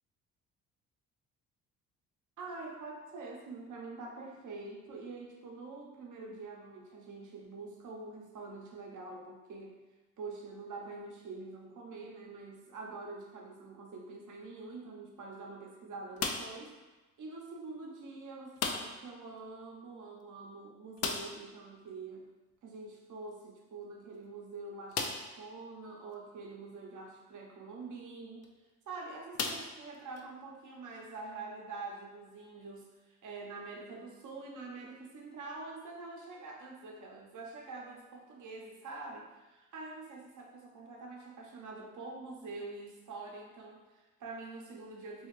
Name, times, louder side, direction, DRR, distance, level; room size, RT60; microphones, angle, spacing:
voice 1, 2.4-9.8 10.2-16.7 17.2-22.3 22.6-28.5 28.9-45.3, right 3 dB, 50° right, -1 dB, 0.8 m, -45 dB
sound 1, 16.2-16.7 18.6-19.1 19.4-19.5 19.8-19.9 21.0-21.5 23.3-23.4 24.0-24.1 24.9-25.4 26.1-26.2 28.2-28.5 29.3-30.2, left 5 dB, 40° left, 0.4 m, -36 dB
2.5 x 2.4 x 3.1 m, 1.2 s
hypercardioid pair, 55°, 39 cm